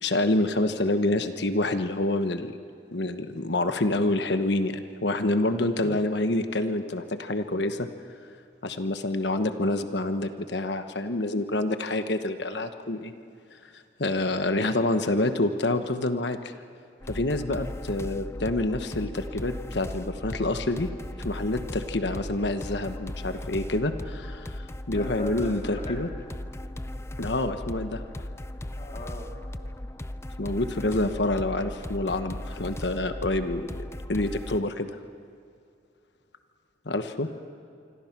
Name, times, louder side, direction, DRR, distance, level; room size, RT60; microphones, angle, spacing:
voice 1, 0.0-2.5 2.9-7.9 8.6-13.1 14.0-16.4 17.1-20.9 21.2-26.1 27.2-28.0 30.4-33.7 34.1-35.0 36.9-37.3, left 2 dB, 75° left, 8 dB, 1.2 m, -27 dB
sound 1, 17.0-34.6, left 1 dB, 15° left, 0.5 m, -37 dB
voice 2, 24.9-26.0 28.8-29.3 37.2-37.4, left 1 dB, 35° left, 0 dB, 3.5 m, -39 dB
26.5 x 25.5 x 6.0 m, 2.5 s
head